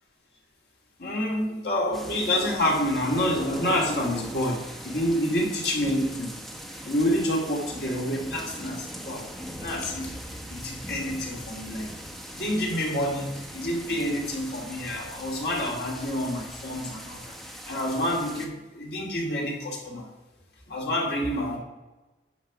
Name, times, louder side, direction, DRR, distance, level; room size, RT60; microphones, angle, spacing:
voice 1, 1.0-6.3 6.8-9.3 9.6-10.1 10.5-11.9 12.3-17.3 17.7-20.1 20.7-21.6, left 1 dB, 65° left, 0 dB, 2.4 m, -28 dB
sound 1, 1.9-18.5, equal, ahead, 0.9 m, -40 dB
10.5 x 4.9 x 6.1 m, 1.1 s
head